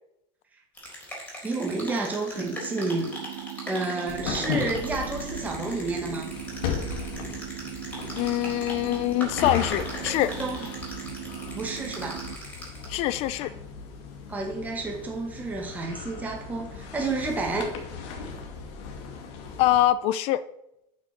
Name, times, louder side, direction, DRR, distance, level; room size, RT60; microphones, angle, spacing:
sound 1, 0.7-13.1, equal, 10° left, 3.9 m, -40 dB
voice 1, 1.4-3.1 3.7-6.3 10.4-10.7 11.5-12.2 14.3-17.7, right 3 dB, 10° right, -1 dB, 1.7 m, -30 dB
sound 2, 2.3-12.3, right 17 dB, 55° right, 0.7 m, -39 dB
sound 3, 4.1-19.8, left 6 dB, 80° left, 2.3 m, -37 dB
voice 2, 8.1-10.3 12.9-13.5 19.6-20.4, left 14 dB, 50° left, 16 dB, 0.6 m, -24 dB
9.1 x 6.3 x 6.6 m, 0.86 s
supercardioid pair, 155°, 14 cm